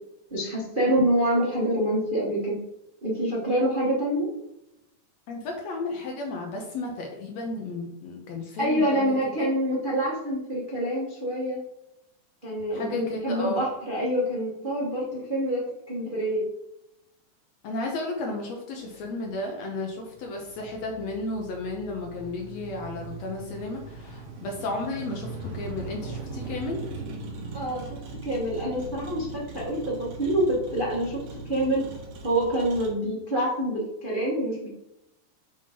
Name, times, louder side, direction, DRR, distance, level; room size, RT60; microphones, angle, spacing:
voice 1, 0.3-2.6 3.0-4.3 8.6-11.6 12.4-16.4 27.5-27.9 28.2-31.2 31.4-31.8 32.2-34.7, right 1 dB, 65° right, -6 dB, 0.5 m, -26 dB
voice 2, 5.3-9.5 12.7-13.6 17.6-26.8, left 2 dB, 70° left, 1 dB, 1.8 m, -33 dB
Motor vehicle (road), 18.8-32.9, right 3 dB, 85° right, 3.0 m, -40 dB
6.8 x 3.7 x 5.1 m, 0.84 s
omnidirectional pair, 3.9 m